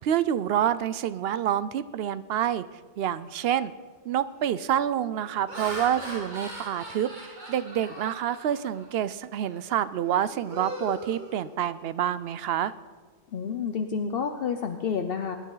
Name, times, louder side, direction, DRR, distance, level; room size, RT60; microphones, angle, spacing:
voice 1, 0.0-2.6 3.0-3.7 4.0-7.1 7.5-12.7, right 10 dB, 70° right, 15 dB, 0.7 m, -27 dB
Laughter, 3.4-3.7 4.2-4.5 5.1-9.0 9.4-9.6 10.0-12.0, right 1 dB, 45° right, 1.8 m, -40 dB
voice 2, 13.3-15.4, left 6 dB, 60° left, 6 dB, 0.9 m, -30 dB
21.5 x 10.0 x 3.9 m, 1.4 s
omnidirectional pair, 1.1 m